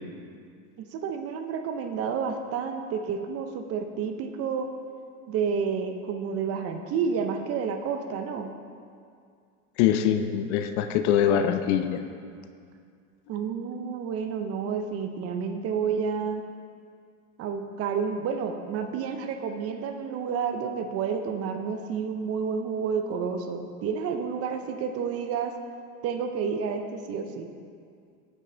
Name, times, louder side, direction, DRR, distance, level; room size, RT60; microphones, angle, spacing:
voice 1, 0.9-4.7 5.3-8.5 13.3-16.4 17.4-25.5 26.0-27.5, right 6 dB, 35° right, 6 dB, 0.7 m, -30 dB
voice 2, 9.8-12.0, left 9 dB, 50° left, 9 dB, 0.7 m, -23 dB
14.0 x 5.3 x 3.9 m, 2.2 s
supercardioid pair, 120°, 44 cm